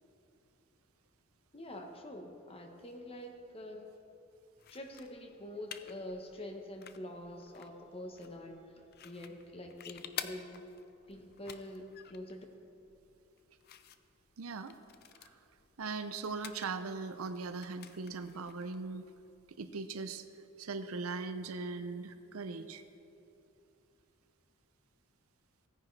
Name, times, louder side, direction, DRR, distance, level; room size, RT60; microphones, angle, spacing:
voice 1, 1.5-3.9 4.7-10.7 11.1-12.4, left 1 dB, 30° left, 4 dB, 1.0 m, -46 dB
sound 1, 4.6-19.7, left 9 dB, 50° left, 0.5 m, -51 dB
voice 2, 14.4-14.7 15.2-15.4 15.8-19.0 19.6-20.2 20.6-22.8, right 4 dB, 85° right, 10 dB, 0.6 m, -39 dB
16.5 x 9.9 x 3.3 m, 2.7 s
head